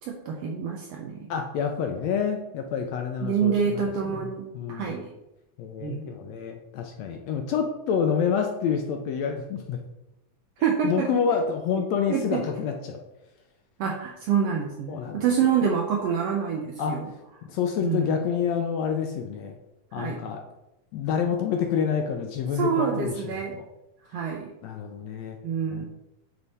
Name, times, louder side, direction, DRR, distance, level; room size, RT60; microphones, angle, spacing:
voice 1, 0.0-1.3 3.2-5.1 5.8-6.1 10.6-11.1 12.1-12.4 13.8-17.1 17.8-18.2 19.9-20.2 22.5-23.5 24.1-24.5 25.4-25.9, right 7 dB, 85° right, 1 dB, 1.4 m, -27 dB
voice 2, 1.3-5.0 5.6-9.8 10.8-13.0 14.9-15.3 16.8-17.0 17.4-19.5 19.9-20.4 20.9-23.6 24.6-25.4 25.7-25.9, left 7 dB, 80° left, 4 dB, 1.6 m, -28 dB
9.1 x 3.3 x 4.1 m, 0.92 s
omnidirectional pair, 3.5 m